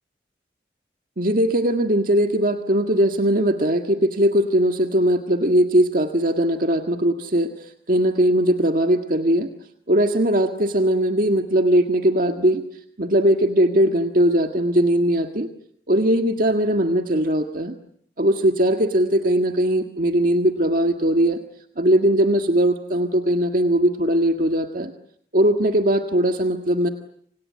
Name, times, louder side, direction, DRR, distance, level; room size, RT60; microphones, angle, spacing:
voice 1, 1.2-9.5 9.9-12.6 13.0-15.5 15.9-17.7 18.2-21.4 21.8-24.9 25.3-26.9, right 1 dB, 50° right, 5 dB, 1.8 m, -20 dB
29.5 x 26.0 x 7.7 m, 0.66 s
head